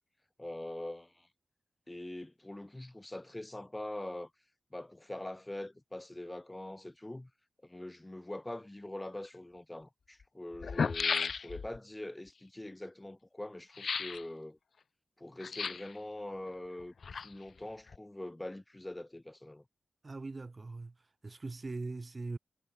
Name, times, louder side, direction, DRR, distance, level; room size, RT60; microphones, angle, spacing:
voice 1, 0.4-1.3 1.9-4.3 4.7-7.3 7.6-14.6 15.2-19.6, left 1 dB, 15° left, 4.1 m, -43 dB
sound 1, 9.2-9.3 10.2-10.3 10.5-11.8 13.7-14.2 15.4-16.0 16.8-17.6 17.9-18.0, left 5 dB, 70° left, 2.1 m, -34 dB
voice 2, 20.0-20.9 21.2-22.4, right 3 dB, 35° right, 3.3 m, -41 dB
wide cardioid pair, 115°, 0 cm